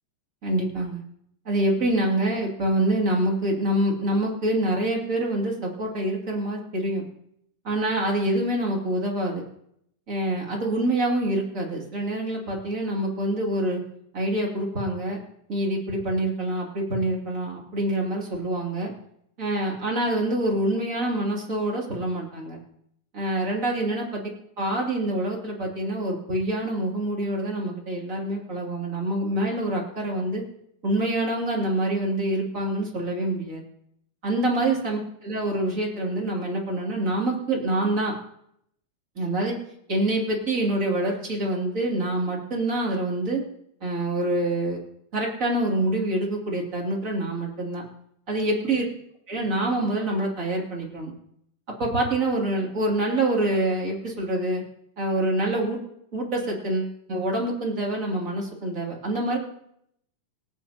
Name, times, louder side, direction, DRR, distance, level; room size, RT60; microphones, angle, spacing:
voice 1, 0.4-1.0 1.4-7.0 7.6-9.4 10.1-13.8 14.1-15.2 15.5-18.9 19.4-22.6 23.1-24.2 24.6-30.4 30.8-33.6 34.2-38.1 39.2-39.5 39.9-43.4 43.8-44.8 45.1-47.8 48.3-48.8 49.3-51.1 51.8-54.6 55.0-55.8 56.1-59.4, right 1 dB, 25° right, -2 dB, 2.8 m, -26 dB
25.0 x 8.9 x 2.9 m, 0.72 s
omnidirectional pair, 3.6 m